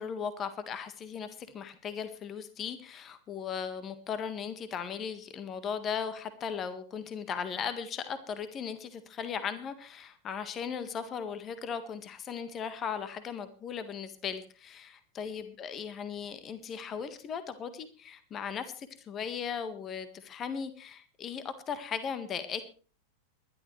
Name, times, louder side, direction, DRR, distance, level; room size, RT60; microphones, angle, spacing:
voice 1, 0.0-22.7, left 7 dB, 25° left, 11 dB, 1.7 m, -37 dB
21.0 x 12.0 x 3.3 m, 0.38 s
figure-of-eight pair, 90°, 0 cm